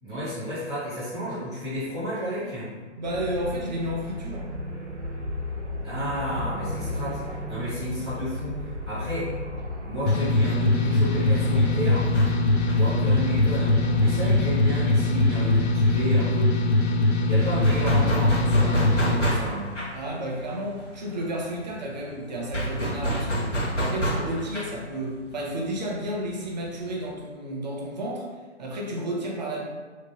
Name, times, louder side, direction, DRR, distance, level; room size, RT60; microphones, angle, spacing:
voice 1, 0.0-2.7 5.8-9.4 9.8-12.1 12.8-16.6 17.3-19.7, equal, 5° left, -18 dB, 0.3 m, -32 dB
voice 2, 2.9-4.5 19.9-28.3 28.6-29.6, right 1 dB, 40° right, -1 dB, 0.6 m, -32 dB
sound 1, 3.0-16.1, left 1 dB, 75° right, 0.6 m, -34 dB
sound 2, 10.1-19.2, left 2 dB, 65° left, 0.5 m, -22 dB
sound 3, 12.0-15.4 15.7-15.8 16.1-27.1, right 1 dB, 85° left, 0.9 m, -30 dB
2.9 x 2.1 x 2.9 m, 1.5 s
figure-of-eight pair, 125°, 36 cm